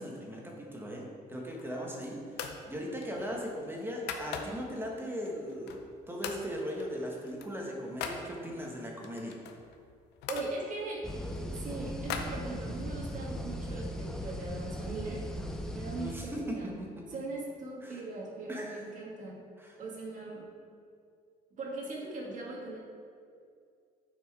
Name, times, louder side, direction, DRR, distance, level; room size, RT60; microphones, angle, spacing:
voice 1, 0.0-9.4 15.9-16.9 17.8-18.0 18.5-18.8 19.6-19.8, equal, 15° right, -1 dB, 1.2 m, -38 dB
sound 1, 1.3-1.9 2.3-2.6 3.0-4.8 5.3-5.9 6.2-6.5 6.8-8.2 9.0-10.5 11.1-12.9, left 7 dB, 80° left, 0.7 m, -41 dB
voice 2, 10.3-11.0 11.5-15.2 15.7-16.7 17.1-19.4 19.8-20.5 21.6-22.8, right 2 dB, 50° right, -2 dB, 1.8 m, -40 dB
sound 2, 11.0-16.1, equal, 5° left, 0.6 m, -38 dB
7.1 x 4.4 x 4.8 m, 2.3 s
cardioid pair, 110°, 17 cm